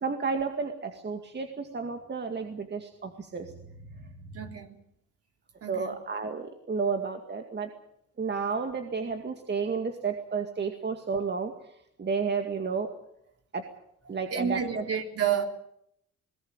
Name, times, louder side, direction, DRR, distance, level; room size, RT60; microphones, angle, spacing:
voice 1, 0.0-3.5 3.9-4.3 5.7-7.7 8.2-11.7 12.0-12.9 13.5-13.6 14.1-14.8, right 5 dB, 35° right, 2.1 m, -32 dB
voice 2, 4.3-4.8 5.6-6.0 14.3-15.4, right 8 dB, 50° right, 3.6 m, -30 dB
21.5 x 17.0 x 8.9 m
cardioid pair, 90°, 30 cm